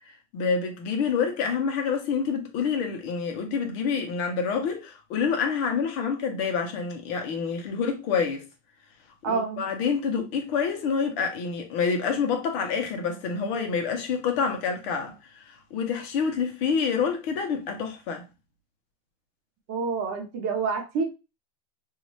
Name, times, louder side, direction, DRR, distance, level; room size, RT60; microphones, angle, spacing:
voice 1, 0.3-8.4 9.2-18.2, left 6 dB, 50° left, 1.0 m, -27 dB
voice 2, 9.2-9.6 19.7-21.0, right 5 dB, 40° right, 1.0 m, -28 dB
2.7 x 2.6 x 3.1 m
supercardioid pair, 125°, 39 cm